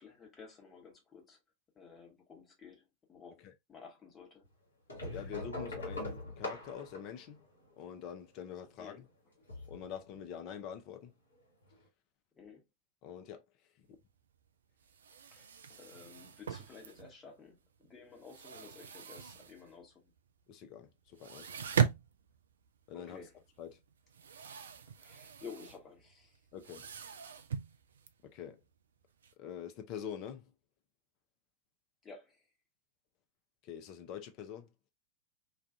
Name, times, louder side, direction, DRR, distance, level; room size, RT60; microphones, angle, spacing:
voice 1, 0.0-1.4 1.7-3.4 3.7-4.5 5.0-5.1 8.8-9.0 12.4-12.6 15.3-20.0 22.9-23.3 25.0-26.4 32.0-32.4, left 5 dB, 20° left, 1.0 m, -53 dB
sound 1, 4.9-8.1 9.4-10.2 11.4-11.5 11.7-11.8, left 2 dB, 75° left, 1.2 m, -42 dB
voice 2, 5.1-7.5 7.8-9.1 9.7-11.1 13.0-13.4 13.8-13.9 20.5-21.5 22.9-23.2 23.6-23.8 26.5-26.9 28.2-28.6 29.4-30.5 33.6-34.7, left 8 dB, 40° left, 0.5 m, -45 dB
sound 2, 14.1-14.2 14.4-14.5 14.8-17.4 17.8-19.9 20.2-20.3 20.6-20.7 21.1-29.3, right 8 dB, 65° right, 0.3 m, -39 dB
2.4 x 2.3 x 2.5 m
figure-of-eight pair, 90°, 0 cm